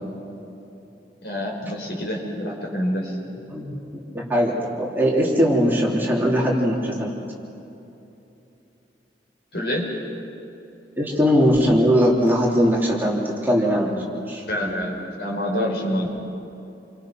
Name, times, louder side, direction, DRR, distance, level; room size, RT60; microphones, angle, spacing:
voice 1, 1.2-3.2 9.5-9.9 14.5-16.1, equal, 65° left, 0 dB, 5.2 m, -27 dB
voice 2, 3.5-7.1 11.0-13.9 14.3-14.4, equal, 10° right, -4 dB, 3.5 m, -20 dB
29.5 x 25.0 x 6.1 m, 2.9 s
head